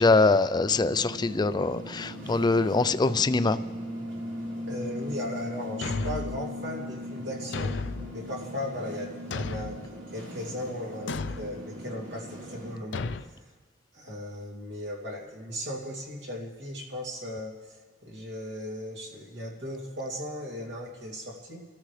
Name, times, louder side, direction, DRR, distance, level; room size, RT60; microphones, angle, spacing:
voice 1, 0.0-3.6, left 3 dB, 25° left, 13 dB, 0.4 m, -23 dB
sound 1, 0.7-12.7, left 1 dB, 85° right, 3.9 m, -39 dB
voice 2, 4.7-7.8 8.1-13.1 13.9-21.6, equal, 65° right, -2 dB, 2.8 m, -37 dB
Thump thud, 5.8-6.4 7.5-8.1 9.3-9.9 11.1-11.5 12.9-13.3, left 3 dB, 70° left, 0.5 m, -33 dB
27.5 x 13.5 x 3.3 m, 1.3 s
head